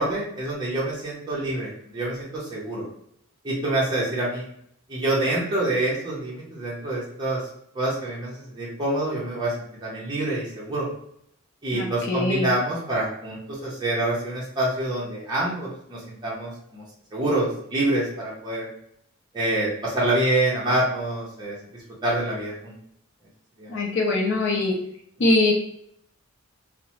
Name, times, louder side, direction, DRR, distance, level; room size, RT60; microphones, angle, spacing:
voice 1, 0.0-2.9 3.4-4.5 4.9-7.4 7.7-9.5 9.8-10.9 11.6-16.8 17.1-18.7 19.3-22.7 23.6-23.8, right 1 dB, 20° right, -6 dB, 0.6 m, -26 dB
voice 2, 11.7-12.5 23.7-24.7 25.2-25.5, left 2 dB, 60° left, 0 dB, 0.5 m, -22 dB
2.7 x 2.0 x 2.9 m, 0.72 s
head